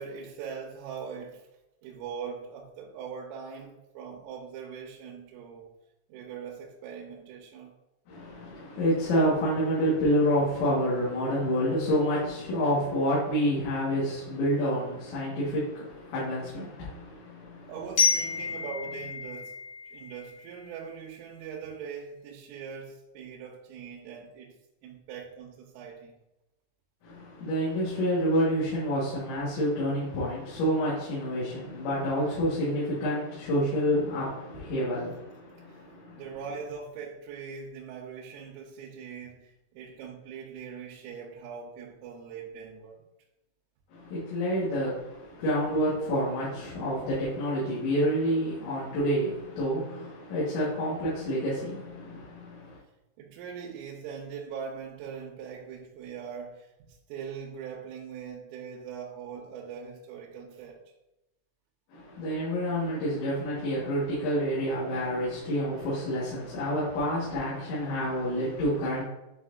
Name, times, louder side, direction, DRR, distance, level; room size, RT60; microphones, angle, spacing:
voice 1, 0.0-1.5 1.8-5.7 6.1-7.7 17.6-19.6 19.9-24.6 24.8-26.2 35.6-43.0 53.2-60.8, right 6 dB, 90° right, -1 dB, 3.4 m, -41 dB
voice 2, 8.1-17.7 27.0-36.2 43.9-52.8 61.9-69.0, equal, 75° left, -9 dB, 3.9 m, -28 dB
Glockenspiel, 18.0-20.8, left 6 dB, 55° left, 2.5 m, -30 dB
10.0 x 4.2 x 2.6 m, 0.94 s
omnidirectional pair, 5.6 m